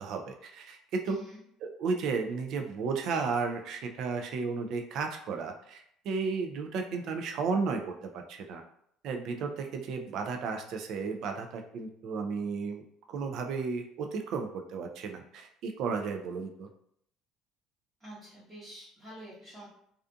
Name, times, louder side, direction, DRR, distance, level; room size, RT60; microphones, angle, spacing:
voice 1, 0.0-1.2 1.6-8.6 9.0-12.8 13.1-16.7, right 4 dB, 50° right, 4 dB, 0.3 m, -33 dB
voice 2, 1.0-1.4 18.0-19.7, right 1 dB, 10° right, -12 dB, 0.9 m, -47 dB
2.4 x 2.4 x 2.5 m, 0.69 s
cardioid pair, 175°, 0 cm